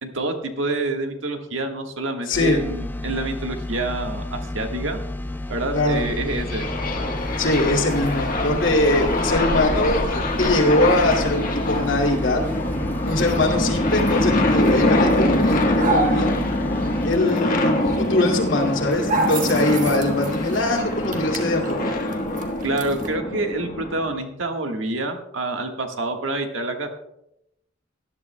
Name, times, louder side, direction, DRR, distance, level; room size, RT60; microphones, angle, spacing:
voice 1, 0.0-5.0 5.5-6.6 22.6-26.9, right 2 dB, 85° right, 4 dB, 1.4 m, -27 dB
voice 2, 2.3-2.6 5.7-6.0 7.4-12.4 13.0-16.4 17.0-21.9, left 2 dB, 80° left, 0 dB, 2.3 m, -22 dB
sound 1, 2.3-17.2, left 1 dB, 10° left, 0.3 m, -31 dB
sound 2, 5.9-24.1, left 1 dB, 45° left, 1.3 m, -24 dB
sound 3, 7.2-23.1, right 2 dB, 45° right, 1.4 m, -34 dB
18.5 x 11.0 x 2.2 m, 0.82 s
head